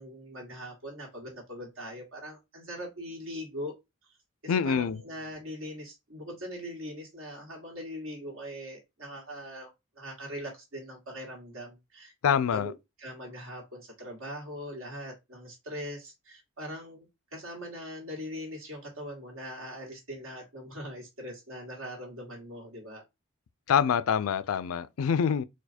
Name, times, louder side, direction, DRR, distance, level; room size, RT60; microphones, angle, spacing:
voice 1, 0.0-3.7 4.4-17.1 17.3-23.0, equal, 90° right, 1.9 m, -41 dB
voice 2, 4.5-5.0 12.2-12.7 23.7-25.4, left 7 dB, 90° left, 0.4 m, -25 dB
4.4 x 2.4 x 4.2 m
head